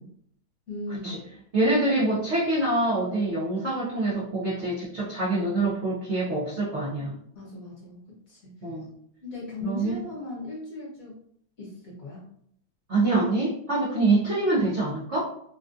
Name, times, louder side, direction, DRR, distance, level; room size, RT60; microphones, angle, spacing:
voice 1, 0.7-1.2 7.3-8.7 9.2-11.1 11.6-12.2, left 2 dB, 45° left, -5 dB, 1.4 m, -38 dB
voice 2, 1.5-7.2 8.6-8.9 9.6-9.9 12.9-15.2, right 2 dB, 70° right, -7 dB, 0.6 m, -25 dB
3.9 x 2.3 x 2.5 m, 0.68 s
omnidirectional pair, 2.3 m